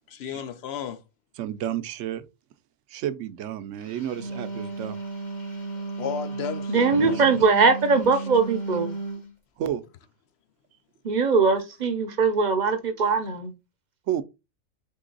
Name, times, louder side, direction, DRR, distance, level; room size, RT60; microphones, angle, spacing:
voice 1, 0.1-1.0 6.0-7.2, left 7 dB, 65° left, 0.7 m, -33 dB
voice 2, 1.4-2.3 2.9-5.0 6.9-7.3 9.6-9.8 14.1-14.2, right 10 dB, 70° right, 0.8 m, -31 dB
Wind instrument woodwind instrument, 4.0-9.3, right 3 dB, 35° left, 1.1 m, -34 dB
voice 3, 6.7-9.0 11.0-13.5, right 4 dB, 45° right, 0.7 m, -21 dB
3.8 x 3.5 x 3.8 m
omnidirectional pair, 1.4 m